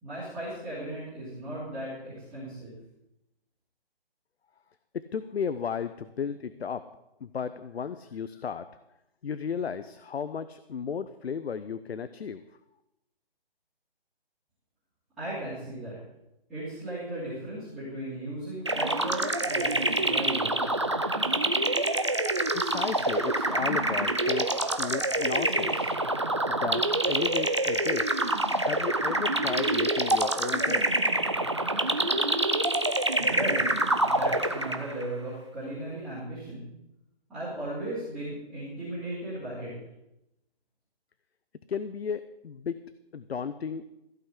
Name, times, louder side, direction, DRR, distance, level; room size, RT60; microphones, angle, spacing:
voice 1, 0.0-2.7 15.2-16.0 16.5-20.8 33.2-33.6 34.0-36.7 37.3-39.7, right 1 dB, ahead, -18 dB, 2.8 m, -36 dB
voice 2, 5.1-6.8 7.2-8.8 9.2-12.4 22.5-26.0 26.5-30.9 41.7-42.8 43.1-43.9, left 6 dB, 80° left, 12 dB, 0.8 m, -34 dB
sound 1, 18.7-35.0, right 2 dB, 30° right, 0.5 m, -26 dB
15.5 x 5.7 x 8.2 m, 0.88 s
hypercardioid pair, 180°, 31 cm